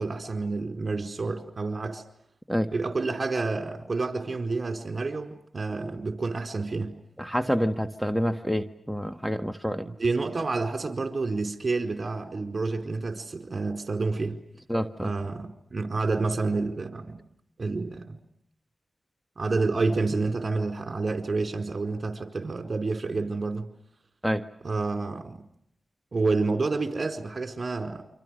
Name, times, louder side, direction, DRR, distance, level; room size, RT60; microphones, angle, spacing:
voice 1, 0.0-2.0 2.7-7.0 9.8-14.4 15.0-17.2 17.6-18.2 19.4-23.7 24.6-25.4 26.1-28.0, right 3 dB, 50° right, 4.6 m, -29 dB
voice 2, 7.2-9.9 14.7-15.1 24.2-24.4, equal, ahead, 1.5 m, -27 dB
29.0 x 26.5 x 6.5 m
cardioid pair, 50°, 0 cm